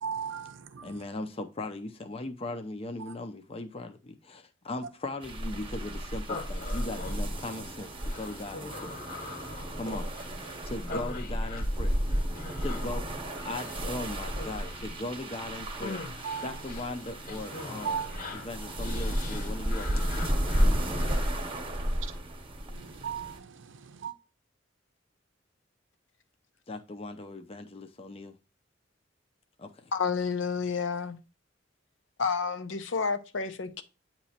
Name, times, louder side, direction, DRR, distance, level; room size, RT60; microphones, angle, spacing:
voice 1, 0.0-0.8 16.2-16.5 17.8-18.1 22.8-23.4 24.0-24.1, right 6 dB, 75° right, 0.6 m, -35 dB
voice 2, 0.8-9.0 9.8-10.0 10.6-12.0 12.6-13.0 13.4-16.0 16.4-18.0 18.3-21.0 26.7-28.4 29.6-29.9, left 2 dB, 30° left, 0.6 m, -39 dB
sound 1, 5.2-23.4, equal, 30° right, 1.0 m, -33 dB
Human voice, 6.3-21.4, left 3 dB, 50° left, 1.0 m, -43 dB
voice 3, 29.9-31.2 32.2-33.8, left 5 dB, 75° left, 0.7 m, -30 dB
8.8 x 3.0 x 4.2 m
head